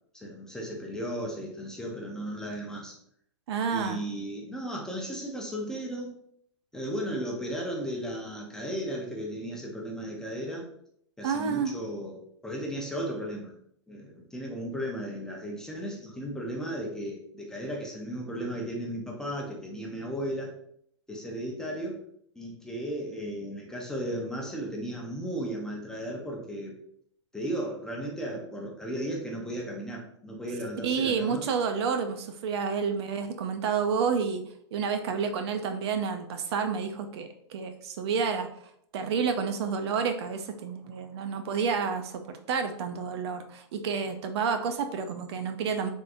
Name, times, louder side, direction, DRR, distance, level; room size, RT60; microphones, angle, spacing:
voice 1, 0.1-2.9 3.7-6.1 6.7-10.7 11.2-13.6 13.9-20.6 21.1-22.0 22.4-26.8 27.3-31.4, equal, 5° left, -1 dB, 0.5 m, -35 dB
voice 2, 3.5-4.0 11.2-11.7 30.8-34.4 34.7-38.5 38.9-45.9, right 6 dB, 60° right, 7 dB, 0.5 m, -29 dB
3.5 x 2.5 x 2.5 m, 0.69 s
hypercardioid pair, 135°, 16 cm